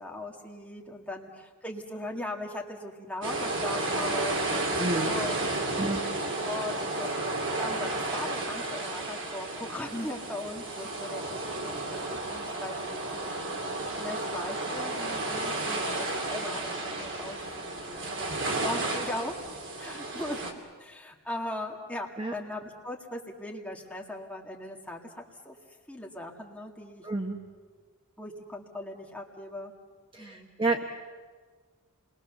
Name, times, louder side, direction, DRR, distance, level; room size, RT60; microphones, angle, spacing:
voice 1, 0.0-5.4 5.7-13.7 14.0-19.3 19.8-25.6 25.9-27.1 28.2-29.7 30.2-30.5, left 1 dB, 5° left, -1 dB, 2.2 m, -39 dB
sound 1, 3.2-20.5, right 2 dB, 55° right, 2.7 m, -32 dB
voice 2, 4.8-5.2 5.8-6.0 22.2-22.3 27.0-27.4 30.1-30.8, right 2 dB, 20° right, 3 dB, 1.1 m, -30 dB
27.0 x 21.5 x 6.9 m, 1.4 s
head